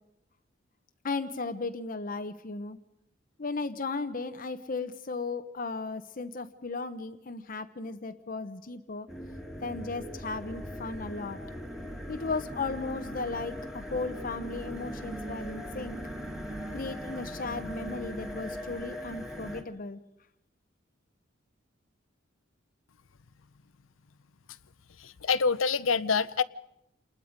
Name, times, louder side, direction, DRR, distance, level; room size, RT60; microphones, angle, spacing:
voice 1, 1.0-2.8 3.4-9.1 9.6-11.4 12.1-16.0 16.7-20.0, left 3 dB, 45° left, 9 dB, 0.8 m, -35 dB
sound 1, 9.1-19.6, equal, ahead, 1.8 m, -39 dB
voice 2, 25.0-26.4, left 5 dB, 90° left, 16 dB, 0.7 m, -26 dB
29.0 x 20.0 x 5.1 m, 0.85 s
head